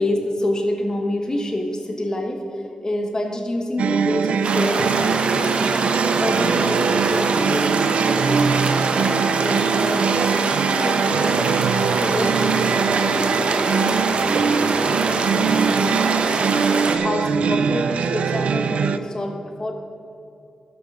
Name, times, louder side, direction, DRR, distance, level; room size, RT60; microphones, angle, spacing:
voice 1, 0.0-5.7 6.2-11.6 12.0-16.4 17.0-19.7, left 1 dB, 35° left, 2 dB, 1.3 m, -28 dB
sound 1, 3.8-19.0, right 6 dB, 90° right, 0.4 m, -22 dB
sound 2, 4.4-17.0, right 3 dB, 65° right, 1.0 m, -23 dB
12.0 x 6.0 x 6.7 m, 2.7 s
cardioid pair, 70°, 2 cm